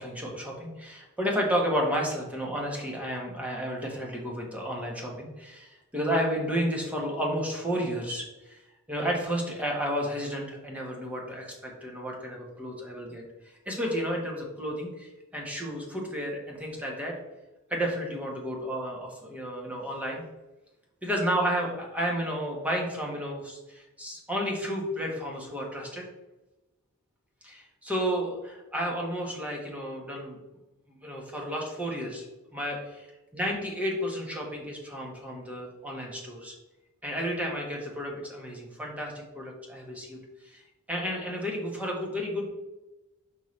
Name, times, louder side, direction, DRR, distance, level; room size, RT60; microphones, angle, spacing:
voice 1, 0.0-17.1 17.7-20.2 21.0-26.1 27.4-30.4 30.9-32.3 32.5-36.6 37.0-42.5, equal, 5° right, -1 dB, 1.2 m, -32 dB
5.6 x 5.5 x 3.2 m, 1.0 s
head